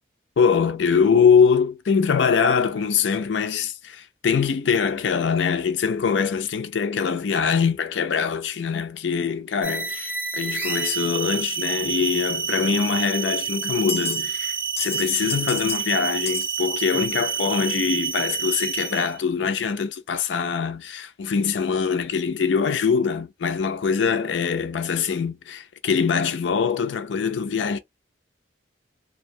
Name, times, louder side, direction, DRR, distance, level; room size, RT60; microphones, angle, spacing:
voice 1, 0.4-27.8, left 6 dB, 85° left, 0.4 m, -23 dB
sound 1, 9.6-19.2, right 6 dB, 10° right, 0.4 m, -28 dB
sound 2, 12.9-13.0 13.9-14.2 14.5-15.8 16.3-16.6, left 7 dB, 35° left, 0.6 m, -32 dB
2.7 x 2.1 x 2.7 m
head